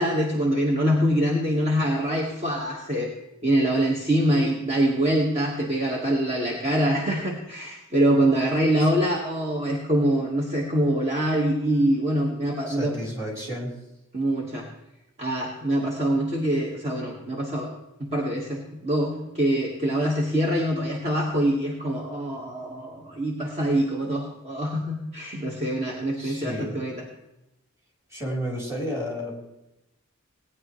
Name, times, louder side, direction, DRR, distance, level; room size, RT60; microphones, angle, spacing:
voice 1, 0.0-3.1 3.4-12.9 14.1-14.7 15.2-17.7 18.0-27.1, right 1 dB, 30° right, -1 dB, 1.4 m, -24 dB
voice 2, 12.7-13.8 26.2-26.8 28.1-29.4, equal, 15° right, -3 dB, 3.4 m, -32 dB
18.0 x 9.7 x 3.1 m, 0.92 s
head